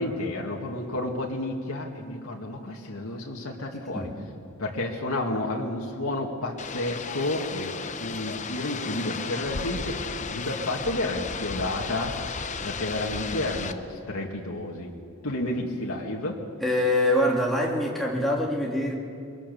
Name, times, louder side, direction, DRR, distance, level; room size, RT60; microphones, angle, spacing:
voice 1, 0.0-4.1 4.6-7.7 8.0-10.0 10.3-12.1 12.6-14.9 15.2-16.4, left 1 dB, 75° left, 0 dB, 2.2 m, -31 dB
sound 1, 6.6-13.7, left 5 dB, 35° left, 0.8 m, -34 dB
voice 2, 16.6-19.0, left 1 dB, ahead, -2 dB, 2.4 m, -24 dB
22.5 x 21.5 x 7.0 m, 2.5 s
head